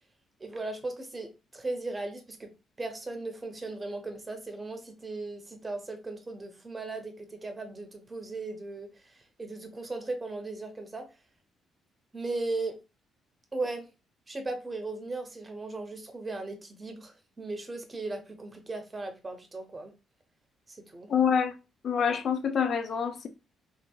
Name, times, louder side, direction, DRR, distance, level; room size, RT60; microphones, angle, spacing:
voice 1, 0.4-2.5 2.8-11.1 12.1-12.8 13.5-13.9 14.3-19.9 20.7-21.1, right 2 dB, 25° right, 0.6 m, -37 dB
voice 2, 21.1-21.5 21.8-23.3, left 7 dB, 55° left, 0.4 m, -26 dB
2.7 x 2.7 x 2.2 m
cardioid pair, 90°, 0 cm